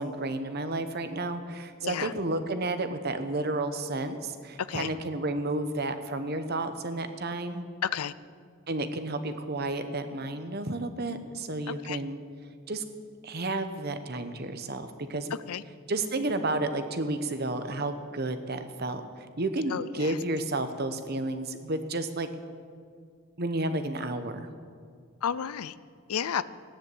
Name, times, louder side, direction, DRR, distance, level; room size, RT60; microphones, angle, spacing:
voice 1, 0.0-7.6 8.7-12.2 12.7-12.8 13.2-15.3 15.9-22.3 23.4-24.5, right 2 dB, 45° right, 9 dB, 1.1 m, -31 dB
voice 2, 7.8-8.1 11.9-12.0 15.5-15.6 19.7-20.1 25.2-25.7 26.1-26.4, left 8 dB, 90° left, 17 dB, 0.5 m, -31 dB
16.5 x 10.0 x 8.0 m, 2.1 s
head